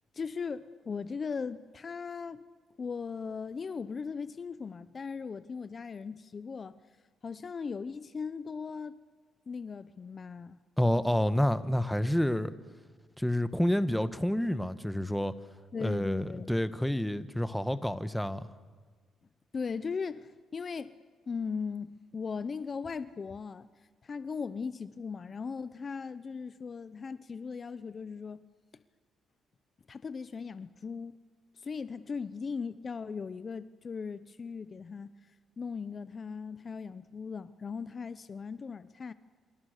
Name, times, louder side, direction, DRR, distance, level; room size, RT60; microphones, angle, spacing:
voice 1, 0.1-2.4 2.8-6.8 7.2-9.0 9.5-10.6 15.7-16.5 19.5-21.0 21.3-23.7 24.0-28.4 29.9-31.2 31.6-35.1 35.6-39.1, left 5 dB, 40° left, 0.9 m, -38 dB
voice 2, 10.8-12.5 13.2-15.3 15.8-18.5, left 1 dB, 5° left, 1.4 m, -29 dB
30.0 x 26.5 x 6.8 m
cardioid pair, 90°, 0 cm